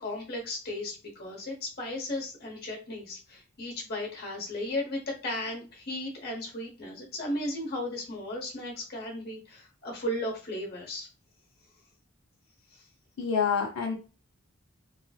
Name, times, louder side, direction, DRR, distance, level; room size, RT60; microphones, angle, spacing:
voice 1, 0.0-11.1, left 1 dB, 50° left, 0 dB, 1.0 m, -35 dB
voice 2, 13.2-13.9, left 6 dB, 85° left, 0 dB, 0.6 m, -27 dB
3.1 x 2.6 x 2.3 m, 0.34 s
head